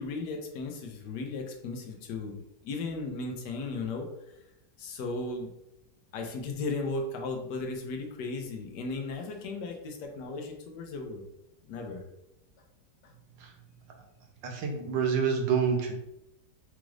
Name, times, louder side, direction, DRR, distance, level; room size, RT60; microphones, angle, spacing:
voice 1, 0.0-4.1 4.8-5.5 6.1-11.2 11.7-12.0, left 3 dB, 70° left, 3 dB, 1.3 m, -36 dB
voice 2, 14.4-16.0, right 6 dB, 90° right, 2 dB, 1.5 m, -27 dB
5.0 x 2.4 x 3.1 m, 0.84 s
omnidirectional pair, 2.0 m